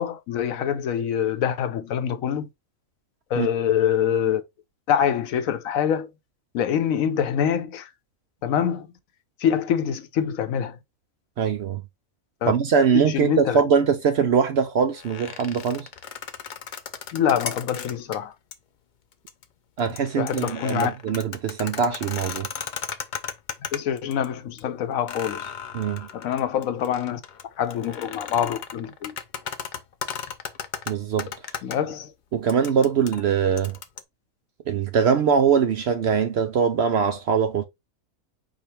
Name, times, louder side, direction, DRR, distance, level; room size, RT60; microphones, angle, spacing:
voice 1, 0.0-2.5 3.3-4.4 4.9-6.1 6.5-7.9 8.4-8.9 9.4-10.8 12.4-12.5 12.9-13.6 17.1-18.3 20.2-20.9 23.7-25.5 26.1-27.2 27.6-29.1 31.6-32.1, left 8 dB, 75° left, 1.0 m, -25 dB
voice 2, 11.4-11.8 12.5-15.9 19.8-22.5 25.7-26.1 30.9-31.3 32.3-33.8 34.7-37.7, right 6 dB, 65° right, 0.7 m, -22 dB
sound 1, 14.9-18.2 18.5-18.6 19.1-19.4 19.8-24.3 24.6-24.7 25.1-31.8 32.5-34.0, left 7 dB, 60° left, 0.5 m, -36 dB
5.0 x 2.4 x 4.2 m
omnidirectional pair, 1.5 m